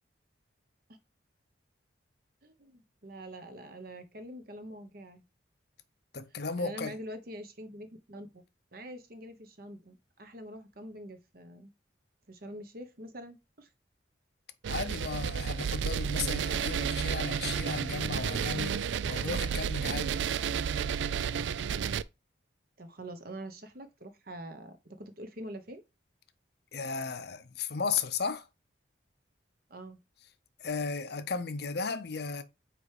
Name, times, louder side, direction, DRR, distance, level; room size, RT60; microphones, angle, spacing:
voice 1, 2.4-5.2 6.6-8.4 8.7-11.7 12.3-13.7 22.8-25.8 29.7-30.0, right 1 dB, 50° right, 1.0 m, -45 dB
voice 2, 6.1-7.0 14.7-20.2 26.7-28.5 30.6-32.4, left 5 dB, 60° left, 0.7 m, -35 dB
sound 1, 14.6-22.0, right 7 dB, 70° right, 0.3 m, -31 dB
5.0 x 4.6 x 4.9 m
head